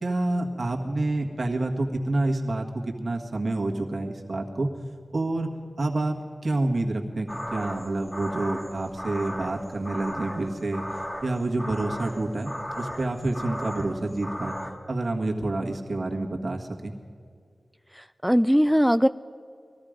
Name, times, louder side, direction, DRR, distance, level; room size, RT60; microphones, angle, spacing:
voice 1, 0.0-4.7 5.1-5.5 5.8-6.2 6.4-10.8 11.2-14.6 14.9-17.0, right 2 dB, 60° right, 1 dB, 1.7 m, -28 dB
sound 1, 7.3-14.7, equal, 15° left, 1.8 m, -36 dB
voice 2, 17.9-19.1, equal, ahead, 12 dB, 0.3 m, -20 dB
20.5 x 13.5 x 5.1 m, 2.2 s
cardioid pair, 55°, 0 cm